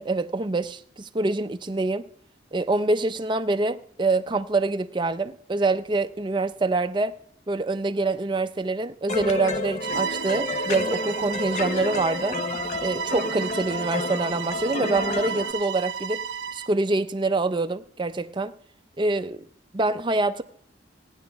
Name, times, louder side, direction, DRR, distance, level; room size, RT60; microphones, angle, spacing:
voice 1, 0.0-2.1 2.5-7.1 7.5-12.4 12.8-16.3 16.5-18.5 19.0-19.5 19.7-20.4, right 2 dB, 25° right, 0.5 m, -25 dB
sound 1, 9.1-15.5, left 3 dB, 40° left, 0.6 m, -31 dB
Bowed string instrument, 9.8-16.7, right 7 dB, 85° right, 0.4 m, -33 dB
17.5 x 9.8 x 3.4 m
head